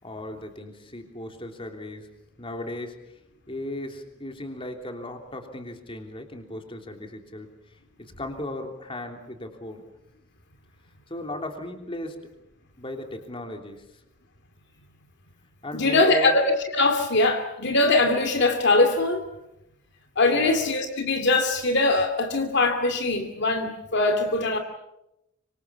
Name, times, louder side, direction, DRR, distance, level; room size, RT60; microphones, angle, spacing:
voice 1, 0.0-2.1 2.4-3.0 3.5-7.5 8.0-9.8 11.1-12.2 12.8-13.8 15.6-16.4 20.3-20.6, left 1 dB, 25° left, 4 dB, 3.3 m, -36 dB
voice 2, 15.7-19.3 20.2-24.6, left 2 dB, 55° left, 6 dB, 2.4 m, -22 dB
25.5 x 25.5 x 7.1 m, 0.86 s
head